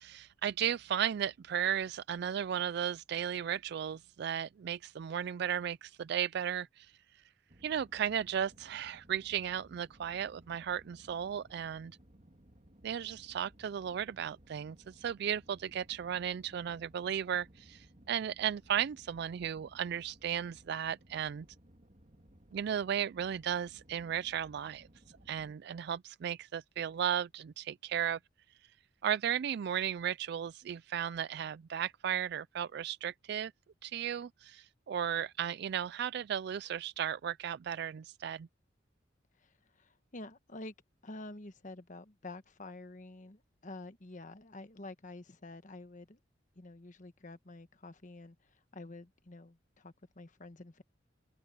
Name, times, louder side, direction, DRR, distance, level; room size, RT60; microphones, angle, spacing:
voice 1, 0.0-6.9 7.6-12.0 12.8-21.5 22.5-24.9 25.3-28.2 29.0-33.5 33.8-38.5, right 9 dB, 60° right, 0.3 m, -35 dB
sound 1, 7.5-25.6, right 1 dB, 40° right, 2.3 m, -61 dB
voice 2, 39.4-40.7 41.0-46.2 46.5-50.8, left 2 dB, 40° left, 1.2 m, -49 dB
head